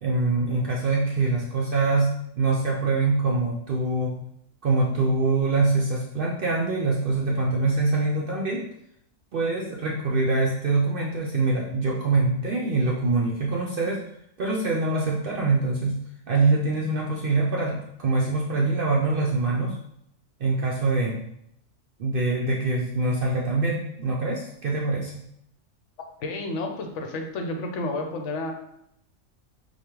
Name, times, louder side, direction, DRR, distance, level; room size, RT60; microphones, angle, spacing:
voice 1, 0.0-4.2 4.6-8.7 9.3-14.0 14.4-16.0 16.3-19.8 20.4-21.2 22.0-25.2, right 3 dB, 65° right, -2 dB, 0.5 m, -24 dB
voice 2, 26.2-28.5, left 2 dB, 65° left, 3 dB, 0.9 m, -30 dB
4.9 x 2.4 x 2.9 m, 0.74 s
omnidirectional pair, 1.4 m